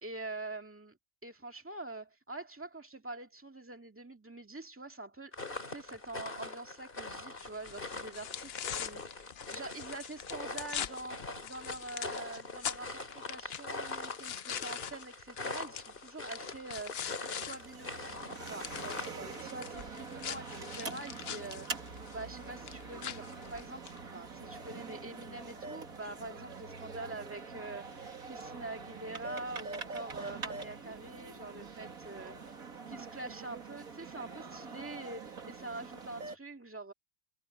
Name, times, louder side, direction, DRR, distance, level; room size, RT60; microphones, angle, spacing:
voice 1, 0.0-5.3 5.7-17.0 17.4-32.6 32.9-36.9, right 2 dB, 10° right, 1.9 m, -45 dB
sound 1, 5.3-19.2, left 3 dB, 30° left, 2.7 m, -43 dB
sound 2, 7.4-17.6 17.9-24.0, left 9 dB, 55° left, 0.7 m, -43 dB
sound 3, 17.4-36.4, right 4 dB, 55° right, 2.8 m, -44 dB
omnidirectional pair, 1.8 m